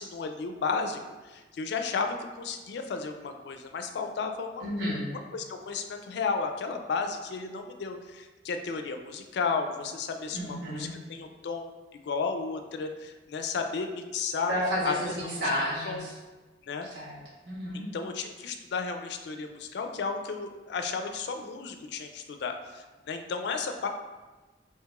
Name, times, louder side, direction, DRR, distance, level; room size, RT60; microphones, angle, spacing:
voice 1, 0.0-4.6 5.3-14.5 14.8-15.4 15.8-16.1 16.6-16.9 17.7-23.9, left 4 dB, 65° left, 5 dB, 0.3 m, -33 dB
voice 2, 4.6-5.0 10.3-10.9 14.5-16.1 16.9-17.2 17.5-17.8, equal, 80° right, -5 dB, 1.1 m, -31 dB
4.6 x 2.8 x 2.3 m, 1.2 s
head